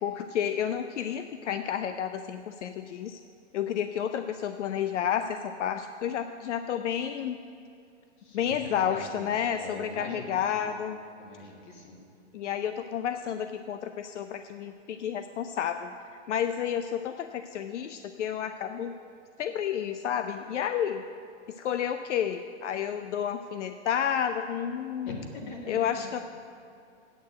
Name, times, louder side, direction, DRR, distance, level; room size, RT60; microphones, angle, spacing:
voice 1, 0.0-3.2 3.5-7.4 8.3-11.0 12.3-15.9 16.3-18.9 19.4-21.0 21.6-25.2 25.7-26.2, left 9 dB, 80° left, 9 dB, 0.6 m, -31 dB
voice 2, 8.6-10.7 11.2-12.0 25.1-25.9, left 2 dB, 45° left, 1 dB, 1.9 m, -42 dB
8.8 x 6.7 x 7.7 m, 2.6 s
hypercardioid pair, 165°, 36 cm